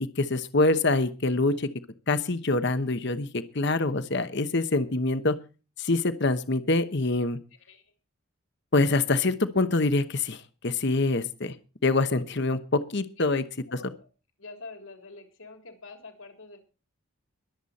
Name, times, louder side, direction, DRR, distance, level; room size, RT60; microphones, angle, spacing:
voice 1, 0.2-1.7 2.1-3.3 3.5-5.4 5.8-7.4 8.7-11.5 11.8-13.4 13.7-13.8, left 2 dB, 50° left, 11 dB, 1.0 m, -25 dB
voice 2, 13.7-14.1 14.4-16.6, left 3 dB, 70° left, 5 dB, 3.5 m, -46 dB
22.0 x 8.2 x 4.2 m, 0.34 s
head